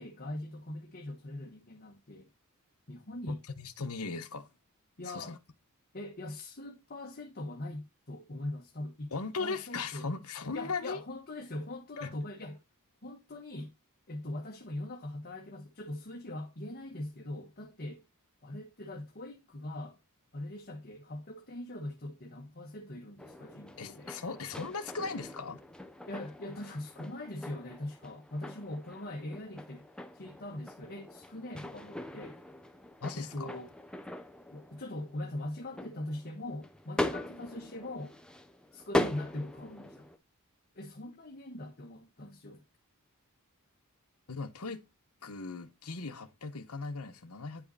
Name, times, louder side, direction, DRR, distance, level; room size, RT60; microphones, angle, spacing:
voice 1, 0.0-2.3 2.9-3.4 5.0-5.4 5.9-9.1 9.4-10.1 10.5-12.6 13.0-13.7 14.1-18.0 18.4-20.0 20.3-24.1 26.1-29.9 30.1-32.4 33.1-33.7 34.5-38.2 38.7-40.1 40.7-42.6, left 1 dB, 45° left, 1.3 m, -41 dB
voice 2, 3.3-4.5 5.1-5.4 9.1-11.0 12.0-12.1 23.8-25.6 33.0-33.5 44.3-44.9 45.2-47.7, left 4 dB, 80° left, 1.2 m, -38 dB
sound 1, 23.2-40.2, left 1 dB, 5° left, 0.9 m, -41 dB
9.7 x 5.6 x 4.1 m
head